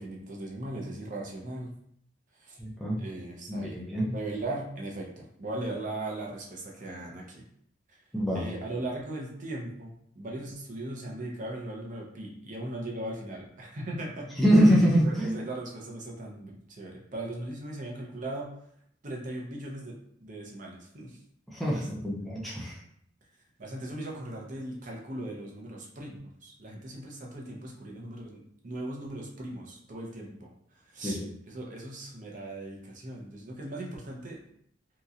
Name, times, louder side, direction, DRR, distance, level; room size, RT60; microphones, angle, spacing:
voice 1, 0.0-1.7 2.4-2.6 3.0-7.4 7.9-8.0 8.3-14.3 15.0-18.5 19.0-19.9 20.2-21.2 21.6-22.1 23.6-30.5 30.9-31.2 31.5-34.4, right 1 dB, 45° right, -2 dB, 0.6 m, -38 dB
voice 2, 2.6-3.0 3.5-4.1 8.1-8.4 14.4-15.4 21.5-22.8 31.0-31.3, equal, ahead, -5 dB, 0.5 m, -24 dB
3.0 x 2.7 x 2.4 m, 0.69 s
head